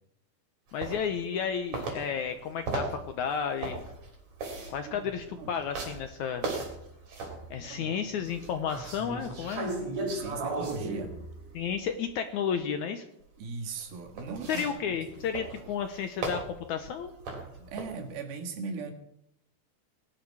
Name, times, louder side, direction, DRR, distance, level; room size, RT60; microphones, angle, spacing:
voice 1, 0.7-3.8 4.7-6.5 7.5-9.7 11.5-13.0 14.5-17.1, left 7 dB, 75° left, 8 dB, 1.9 m, -32 dB
sound 1, 0.8-1.5 1.7-7.6 8.1-12.0 13.8-18.0, right 3 dB, 50° right, 4.4 m, -36 dB
voice 2, 4.9-5.6 7.6-8.0 10.1-11.1 13.4-15.3 17.6-18.9, right 4 dB, 80° right, 5 dB, 3.7 m, -39 dB
20.0 x 11.0 x 4.8 m, 0.77 s
omnidirectional pair, 4.3 m